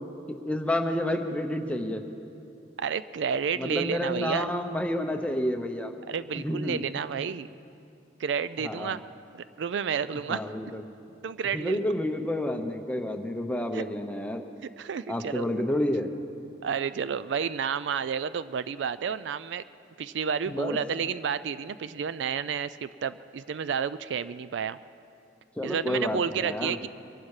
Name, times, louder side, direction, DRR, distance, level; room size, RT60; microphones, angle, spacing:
voice 1, 0.3-2.0 3.6-5.9 6.3-6.8 8.6-9.0 10.3-10.8 11.5-14.4 15.1-16.1 20.5-20.8 25.6-26.8, left 1 dB, 5° left, 4 dB, 0.8 m, -29 dB
voice 2, 2.8-4.5 6.1-7.5 8.2-9.0 9.3-10.4 11.2-11.8 13.7-13.8 14.8-15.5 16.6-19.6 20.0-24.8 25.6-26.9, right 7 dB, 70° right, 15 dB, 0.4 m, -30 dB
23.0 x 11.5 x 4.9 m, 2.8 s
head